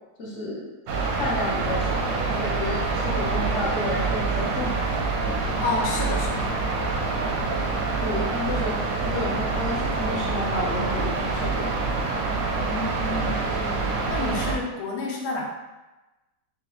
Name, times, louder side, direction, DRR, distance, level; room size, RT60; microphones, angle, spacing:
voice 1, 0.2-0.7 1.2-4.9 8.0-8.8 9.0-11.7, left 1 dB, 50° left, -4 dB, 0.8 m, -31 dB
sound 1, 0.9-14.6, right 3 dB, 65° right, 0.9 m, -26 dB
voice 2, 5.6-6.5 12.6-13.7 14.1-15.5, left 3 dB, 70° left, -1 dB, 1.1 m, -30 dB
3.8 x 3.4 x 3.0 m, 1.1 s
omnidirectional pair, 2.0 m